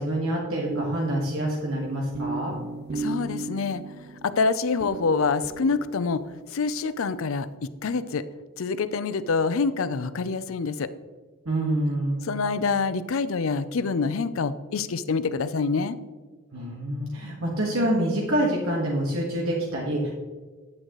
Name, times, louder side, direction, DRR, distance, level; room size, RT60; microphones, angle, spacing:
voice 1, 0.0-2.5 11.4-12.2 16.5-20.1, right 1 dB, 80° right, -2 dB, 1.5 m, -26 dB
sound 1, 0.6-6.7, right 3 dB, 50° right, 0.7 m, -36 dB
voice 2, 2.9-3.8 4.2-6.3 6.5-7.5 7.8-8.2 8.6-10.9 12.2-16.0, left 4 dB, 75° left, 14 dB, 0.5 m, -26 dB
9.7 x 8.9 x 3.0 m, 1.4 s
head